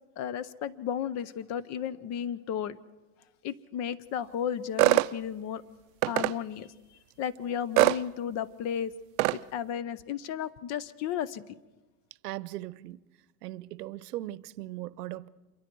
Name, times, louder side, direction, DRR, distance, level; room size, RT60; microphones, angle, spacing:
voice 1, 0.2-2.8 3.4-5.6 6.0-6.7 7.2-8.9 9.3-11.4, left 9 dB, 35° left, 0.7 m, -34 dB
sound 1, 4.8-5.1 6.0-6.3 7.8-8.0 9.2-9.4, right 19 dB, 60° right, 0.6 m, -22 dB
voice 2, 12.2-13.0 13.4-15.3, right 16 dB, 90° right, 0.8 m, -38 dB
27.0 x 23.0 x 4.6 m
supercardioid pair, 140°, 46 cm